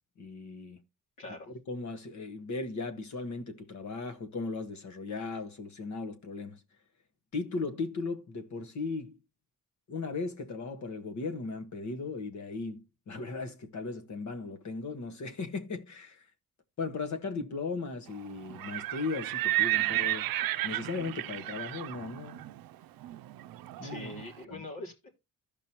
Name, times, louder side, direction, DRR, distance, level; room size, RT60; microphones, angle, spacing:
voice 1, 0.2-0.8 1.7-6.6 7.3-9.2 9.9-16.3 16.8-20.3 20.6-22.5 23.8-24.1 24.5-24.6, left 3 dB, 55° left, 1.4 m, -37 dB
voice 2, 1.2-1.5 23.8-25.1, left 2 dB, 75° left, 3.5 m, -43 dB
Livestock farm animals working animals, 18.5-24.3, right 16 dB, 80° right, 0.5 m, -33 dB
15.0 x 5.3 x 2.9 m
cardioid pair, 125°, 34 cm